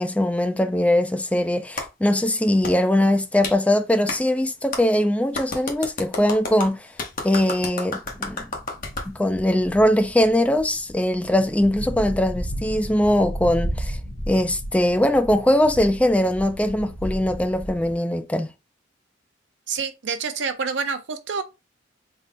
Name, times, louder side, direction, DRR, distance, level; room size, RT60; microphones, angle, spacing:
voice 1, 0.0-6.9 7.2-8.5 9.1-14.0 14.3-18.5, left 1 dB, 5° left, 0.3 m, -21 dB
Clapping, 1.8-1.9 2.6-2.7 3.4-3.6 4.1-4.2 4.7-4.8 5.3-9.1, left 3 dB, 45° left, 0.9 m, -30 dB
sound 1, 8.0-17.9, equal, 75° left, 1.0 m, -34 dB
voice 2, 19.7-21.4, right 5 dB, 65° right, 0.6 m, -27 dB
3.8 x 2.0 x 4.1 m
head